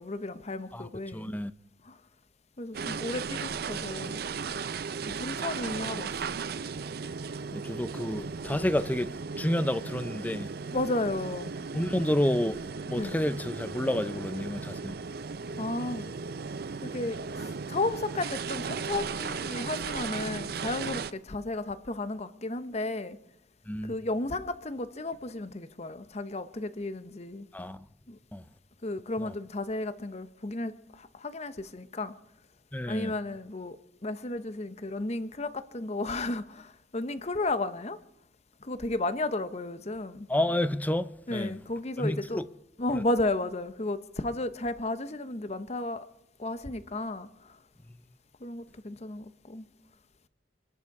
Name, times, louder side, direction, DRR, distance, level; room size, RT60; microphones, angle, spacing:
voice 1, 0.0-1.3 1.8-2.0 2.6-4.2 5.0-6.4 10.7-11.5 13.0-13.1 15.6-16.1 16.8-23.2 23.8-27.5 28.1-28.2 28.8-32.1 32.9-33.8 34.0-38.0 38.6-40.3 41.3-42.4 42.8-46.0 46.4-47.3 48.4-49.7, left 2 dB, 35° left, 0.9 m, -33 dB
voice 2, 0.7-1.5 7.5-10.5 11.7-12.6 12.9-15.0 23.7-23.9 27.5-27.8 28.3-28.4 29.2-29.4 32.7-33.1 40.3-41.6 42.0-42.5 42.9-43.0, left 1 dB, 10° left, 0.5 m, -30 dB
sound 1, 2.7-21.1, right 5 dB, 55° right, 0.5 m, -36 dB
25.0 x 11.0 x 4.8 m
head